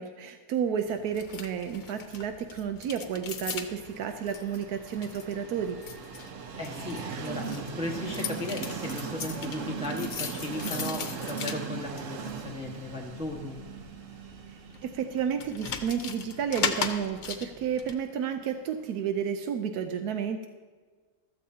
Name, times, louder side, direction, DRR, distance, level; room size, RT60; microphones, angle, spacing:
voice 1, 0.0-5.8 14.8-20.5, right 8 dB, 90° right, 7 dB, 1.2 m, -31 dB
sound 1, 0.9-17.9, left 6 dB, 65° left, 1.2 m, -39 dB
Train, 3.1-18.9, right 6 dB, 60° right, 1.1 m, -40 dB
voice 2, 6.6-13.6, left 2 dB, 5° right, -2 dB, 1.3 m, -36 dB
14.5 x 13.5 x 2.8 m, 1.4 s
omnidirectional pair, 1.6 m